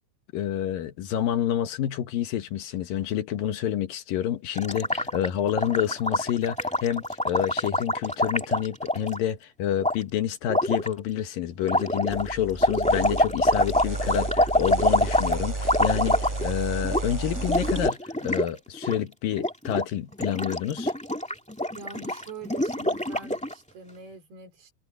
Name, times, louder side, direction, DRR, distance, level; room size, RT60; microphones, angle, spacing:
voice 1, 0.3-20.9, left 10 dB, 70° left, 2.9 m, -28 dB
Gurgling, 4.5-9.2 9.8-9.9 10.5-10.9 11.6-16.6 16.8-17.0 17.3-18.5 18.7-19.0 19.3-19.8 20.1-23.5, left 1 dB, 5° left, 1.1 m, -25 dB
sound 1, 12.1-17.9, right 2 dB, 15° right, 2.7 m, -32 dB
voice 2, 21.7-24.7, right 4 dB, 90° right, 6.5 m, -44 dB
omnidirectional pair, 4.4 m